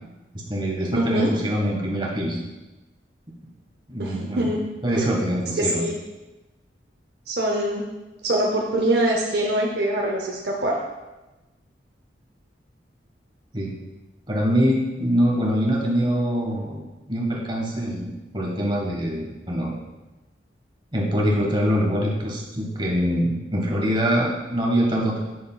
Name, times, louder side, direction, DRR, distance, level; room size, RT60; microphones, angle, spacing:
voice 1, 0.3-2.4 3.9-4.5 4.8-5.8 13.5-13.7 14.3-19.7 20.9-25.2, equal, 30° right, -3 dB, 1.5 m, -24 dB
voice 2, 0.9-1.3 4.0-4.6 5.0-5.2 5.6-6.0 7.3-7.8 8.2-10.8, right 1 dB, 65° right, 0 dB, 0.7 m, -24 dB
7.9 x 6.5 x 2.3 m, 1.1 s
head